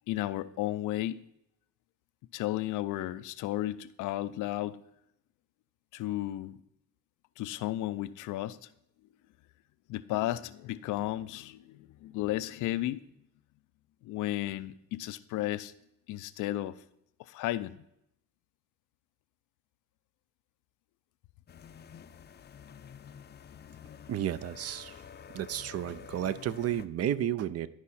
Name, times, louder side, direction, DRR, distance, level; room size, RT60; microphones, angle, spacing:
voice 1, 0.1-1.2 2.3-4.8 5.9-6.6 7.4-8.7 9.9-13.0 14.0-15.7 16.1-16.8 17.2-17.8, left 15 dB, 90° left, 15 dB, 0.5 m, -33 dB
sound 1, 21.5-26.9, left 8 dB, 35° left, 0.4 m, -49 dB
voice 2, 24.1-25.0 25.3-27.7, right 10 dB, 55° right, 16 dB, 0.5 m, -32 dB
11.5 x 4.8 x 4.2 m, 0.78 s
cardioid pair, 90°, 30 cm